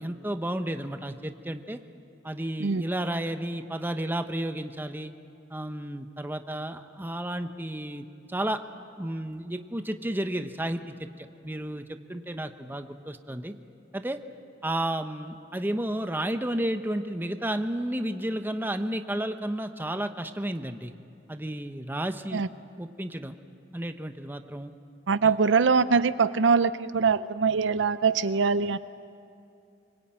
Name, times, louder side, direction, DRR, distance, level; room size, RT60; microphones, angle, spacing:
voice 1, 0.0-1.8 2.2-5.1 5.5-8.6 9.0-13.5 13.9-14.2 14.6-20.9 21.3-22.5 22.8-23.4 23.7-24.7 25.2-25.3, right 1 dB, 10° right, 8 dB, 0.9 m, -32 dB
voice 2, 25.1-28.8, right 5 dB, 75° right, 15 dB, 0.6 m, -23 dB
24.5 x 21.0 x 8.8 m, 2.5 s
head